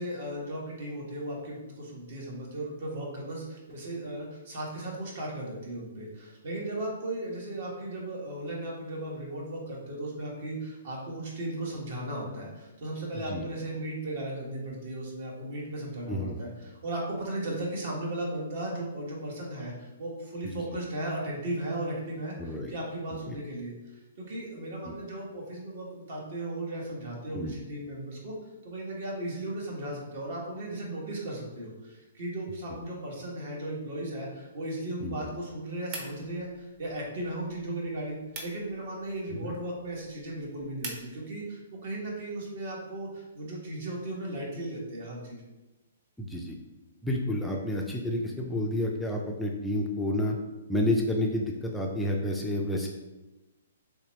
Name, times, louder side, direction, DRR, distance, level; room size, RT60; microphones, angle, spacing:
voice 1, 0.0-28.3 28.6-45.4, right 1 dB, 60° right, -2 dB, 1.2 m, -36 dB
voice 2, 16.1-16.4 20.4-20.6 22.4-22.7 23.3-23.4 24.9-25.0 27.3-27.5 35.0-35.1 39.4-39.5 46.2-46.6 47.0-50.4 50.7-52.9, left 1 dB, 5° left, -1 dB, 0.3 m, -30 dB
sound 1, 35.9-41.1, right 2 dB, 35° right, 0.8 m, -46 dB
3.4 x 2.8 x 3.0 m, 1.1 s
hypercardioid pair, 145°, 0 cm